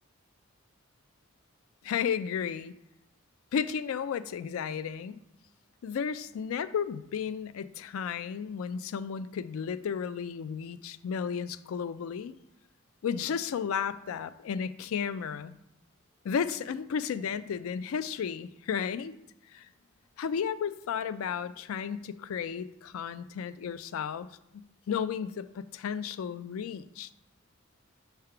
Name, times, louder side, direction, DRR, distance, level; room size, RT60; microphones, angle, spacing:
voice 1, 1.8-2.7 3.5-5.2 5.8-12.3 13.0-15.5 16.2-19.1 19.5-19.7 20.2-24.3 24.5-27.1, left 7 dB, 80° left, 14 dB, 0.3 m, -33 dB
5.6 x 3.4 x 5.7 m, 0.85 s
head